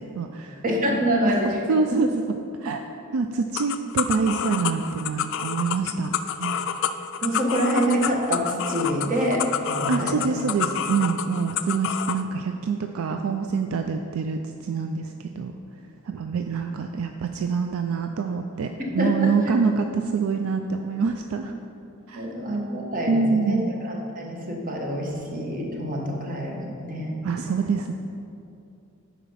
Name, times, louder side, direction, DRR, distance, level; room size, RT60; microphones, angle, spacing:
voice 1, 0.0-0.6 1.2-1.3 1.7-2.1 2.6-2.8 3.1-6.1 6.4-6.8 9.9-15.5 16.0-21.5 22.1-22.3 23.1-23.7 27.2-27.9, right 5 dB, 70° right, 5 dB, 0.4 m, -26 dB
voice 2, 0.6-1.6 5.8-5.9 7.2-10.3 19.0-19.3 22.1-27.1, equal, 40° right, 0 dB, 1.2 m, -26 dB
sound 1, 3.5-12.2, left 9 dB, 60° left, 0.3 m, -29 dB
10.0 x 4.2 x 5.6 m, 2.7 s
head